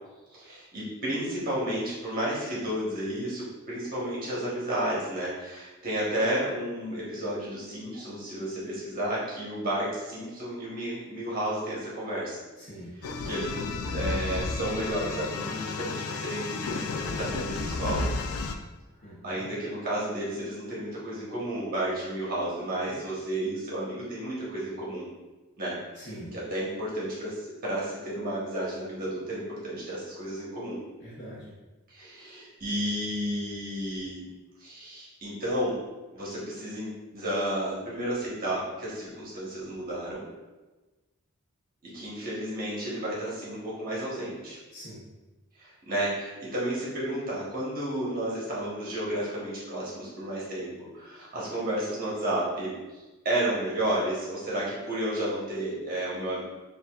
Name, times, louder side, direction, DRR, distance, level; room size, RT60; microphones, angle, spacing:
voice 1, 0.3-12.4 13.2-18.1 19.2-25.1 25.6-25.8 26.3-30.8 31.9-34.3 34.6-35.8 36.1-40.2 41.8-44.6 45.6-56.4, right 1 dB, 45° right, -7 dB, 1.1 m, -32 dB
voice 2, 12.6-12.9 19.0-19.5 25.9-26.3 31.0-31.5 44.7-45.0, equal, 55° left, -7 dB, 1.0 m, -43 dB
sound 1, 13.0-18.5, left 3 dB, 80° left, 0.4 m, -32 dB
6.6 x 2.5 x 2.3 m, 1.2 s
head